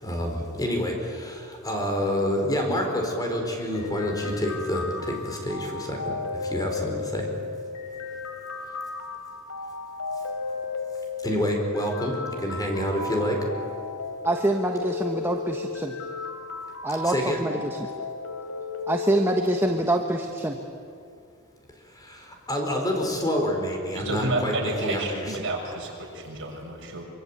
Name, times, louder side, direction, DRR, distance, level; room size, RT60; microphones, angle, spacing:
voice 1, 0.0-6.1 6.5-7.3 11.2-13.4 17.0-17.4 22.0-25.3, left 1 dB, 15° left, 2 dB, 4.6 m, -28 dB
sound 1, 3.7-19.7, left 4 dB, 85° left, 3.3 m, -35 dB
voice 2, 14.2-15.9 16.8-17.9 18.9-20.6, right 1 dB, 10° right, 3 dB, 1.3 m, -25 dB
voice 3, 23.9-27.0, right 2 dB, 60° right, 0 dB, 6.4 m, -30 dB
25.5 x 25.0 x 8.7 m, 2.4 s
head